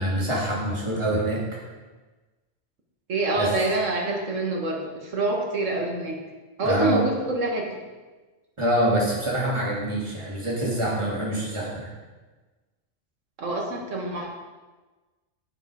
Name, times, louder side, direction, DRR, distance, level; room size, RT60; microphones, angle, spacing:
voice 1, 0.0-1.6 3.4-3.5 6.6-7.0 8.6-11.9, right 1 dB, 20° right, -5 dB, 2.8 m, -25 dB
voice 2, 3.1-6.2 6.6-7.6 13.4-14.4, right 2 dB, 70° right, 0 dB, 2.1 m, -26 dB
10.0 x 8.4 x 5.1 m, 1.3 s
omnidirectional pair, 1.3 m